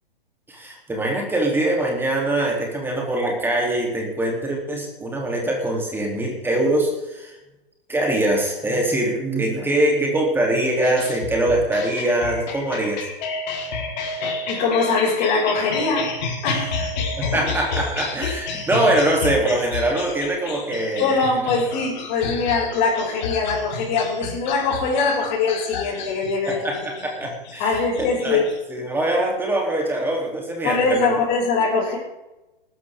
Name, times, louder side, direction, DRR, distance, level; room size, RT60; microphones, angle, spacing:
voice 1, 0.5-7.4 7.9-13.0 17.2-21.2 26.5-28.4 28.7-31.1, right 1 dB, 5° right, 0 dB, 3.1 m, -23 dB
sound 1, 10.8-28.6, left 4 dB, 50° left, 4.0 m, -31 dB
voice 2, 14.5-16.1 16.4-16.9 21.0-26.7 27.6-28.5 30.6-32.0, left 4 dB, 30° left, -5 dB, 6.1 m, -22 dB
19.0 x 14.0 x 3.7 m, 0.99 s
figure-of-eight pair, 120°, 29 cm